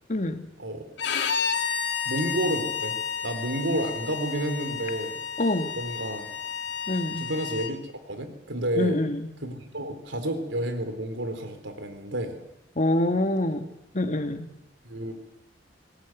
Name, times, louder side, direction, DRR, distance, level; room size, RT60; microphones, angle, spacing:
voice 1, 0.1-0.5 5.4-5.8 6.9-7.3 8.8-9.2 12.8-13.7 13.9-14.5, left 1 dB, 40° left, 8 dB, 1.9 m, -25 dB
Bowed string instrument, 1.0-7.7, left 7 dB, 70° left, 2.4 m, -31 dB
voice 2, 2.0-5.1 5.7-6.3 7.2-7.8 8.1-9.0 9.4-12.4 14.8-15.1, right 1 dB, 80° right, 7 dB, 4.0 m, -30 dB
21.5 x 18.5 x 9.4 m, 0.87 s
head